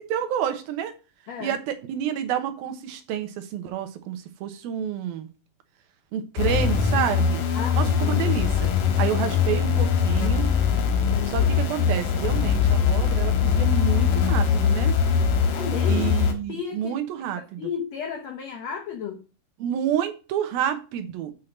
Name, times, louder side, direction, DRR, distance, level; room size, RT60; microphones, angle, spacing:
voice 1, 0.1-0.9 1.4-5.3 6.1-7.4 7.7-8.7 9.0-10.5 11.3-15.0 15.9-17.7 19.6-21.3, right 9 dB, 75° right, 8 dB, 2.8 m, -29 dB
sound 1, 6.4-16.3, left 7 dB, 65° left, 2.7 m, -22 dB
voice 2, 7.5-8.3 8.8-9.0 11.1-11.5 15.5-16.0 16.5-16.9 17.6-19.2, left 7 dB, 80° left, 4 dB, 1.5 m, -33 dB
6.6 x 5.6 x 5.7 m, 0.33 s
omnidirectional pair, 4.5 m